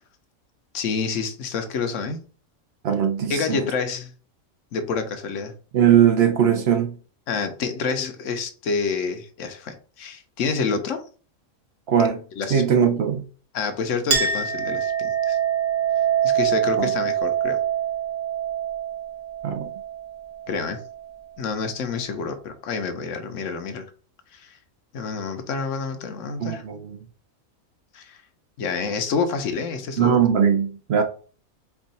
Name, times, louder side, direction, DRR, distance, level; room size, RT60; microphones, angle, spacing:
voice 1, 0.7-2.2 3.3-4.1 4.7-5.5 7.3-11.0 12.3-12.9 13.5-15.4 16.2-17.6 20.5-20.8 21.4-23.8 24.3-24.6 24.9-26.6 27.9-28.2 28.6-30.1, left 5 dB, 70° left, 1.0 m, -28 dB
voice 2, 2.8-3.7 5.7-6.9 11.9-12.2 12.5-13.2 16.8-16.9 19.4-19.7 26.4-27.0 30.0-31.0, right 8 dB, 60° right, 0.7 m, -20 dB
Chink clink, 14.1-21.2, right 9 dB, 75° right, 1.4 m, -25 dB
4.5 x 2.4 x 4.0 m
omnidirectional pair, 1.4 m